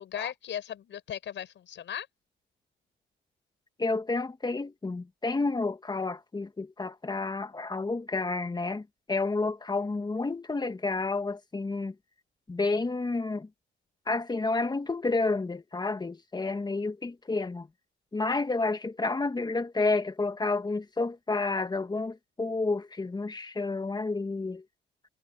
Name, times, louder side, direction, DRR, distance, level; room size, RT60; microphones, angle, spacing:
voice 1, 0.0-2.1, left 10 dB, 70° left, 6.8 m, -37 dB
voice 2, 3.8-12.0 12.5-13.5 14.1-17.7 18.1-24.6, left 3 dB, 20° left, 1.8 m, -30 dB
cardioid pair, 90°, 20 cm